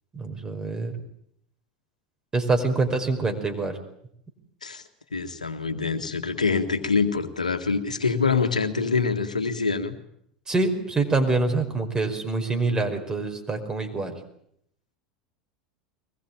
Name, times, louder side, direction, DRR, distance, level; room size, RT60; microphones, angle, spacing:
voice 1, 0.1-0.9 2.3-3.8 10.5-14.2, right 3 dB, 20° right, 4 dB, 5.2 m, -25 dB
voice 2, 5.1-9.9, left 4 dB, 85° left, 8 dB, 1.9 m, -25 dB
23.5 x 20.5 x 9.1 m, 0.72 s
figure-of-eight pair, 80°, 4 cm